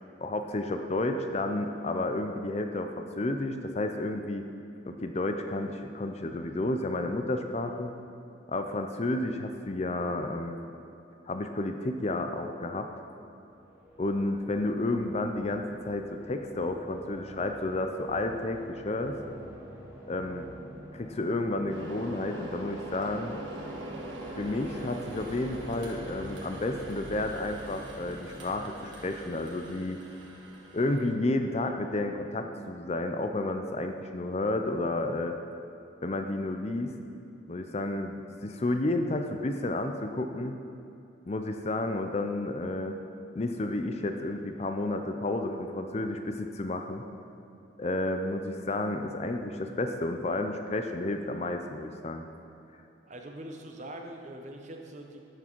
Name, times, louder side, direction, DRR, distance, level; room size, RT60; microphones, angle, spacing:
voice 1, 0.2-4.4 4.9-7.9 8.5-10.6 11.3-12.9 14.0-19.2 20.1-20.5 20.9-23.4 24.4-30.0 30.7-35.4 36.0-36.9 37.5-40.6 41.3-43.0 43.3-47.0 47.8-52.3, left 2 dB, 35° left, 6 dB, 0.5 m, -31 dB
sound 1, 13.4-30.4, equal, 15° right, 1.6 m, -48 dB
sound 2, 21.7-31.1, right 1 dB, 75° right, 1.6 m, -43 dB
voice 2, 53.1-55.2, right 1 dB, 40° right, 2 dB, 0.9 m, -43 dB
13.0 x 6.6 x 4.5 m, 2.8 s
head